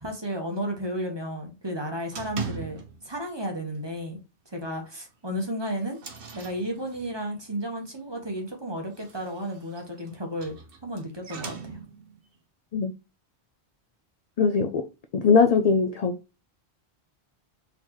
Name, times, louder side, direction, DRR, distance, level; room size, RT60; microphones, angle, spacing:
voice 1, 0.0-4.2 4.5-6.0 6.3-10.6 10.8-11.8, equal, 25° right, 1.2 m, -33 dB
sound 1, 2.1-3.1 3.4-3.8 4.1-4.2 4.6-4.7 5.3-7.3 8.8-12.2, right 5 dB, 55° right, 1.1 m, -41 dB
voice 2, 14.4-14.8 15.1-16.1, left 5 dB, 50° left, 0.5 m, -21 dB
4.3 x 4.0 x 3.0 m
omnidirectional pair, 1.1 m